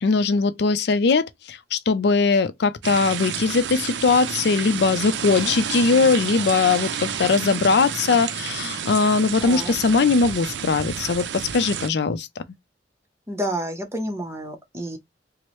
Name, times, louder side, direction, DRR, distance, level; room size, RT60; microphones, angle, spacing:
voice 1, 0.0-12.3, left 4 dB, 65° left, 0.4 m, -20 dB
sound 1, 2.8-11.9, right 8 dB, 75° right, 0.4 m, -30 dB
voice 2, 9.4-9.7 13.3-15.0, equal, 15° right, 0.8 m, -29 dB
4.5 x 2.0 x 3.0 m
head